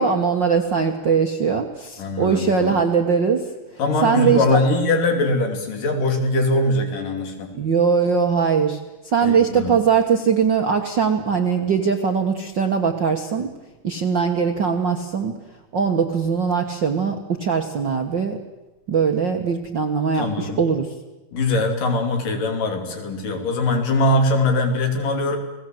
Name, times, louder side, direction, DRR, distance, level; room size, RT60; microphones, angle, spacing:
voice 1, 0.0-3.4 4.0-4.6 7.6-8.8 9.0-13.5 13.8-15.3 15.7-18.4 18.9-20.9, right 6 dB, 50° right, 4 dB, 1.4 m, -20 dB
voice 2, 2.0-2.7 3.8-7.5 9.2-9.7 20.1-20.6 21.3-25.4, left 2 dB, 80° left, 5 dB, 4.5 m, -22 dB
30.0 x 19.0 x 7.8 m, 1.1 s
omnidirectional pair, 3.8 m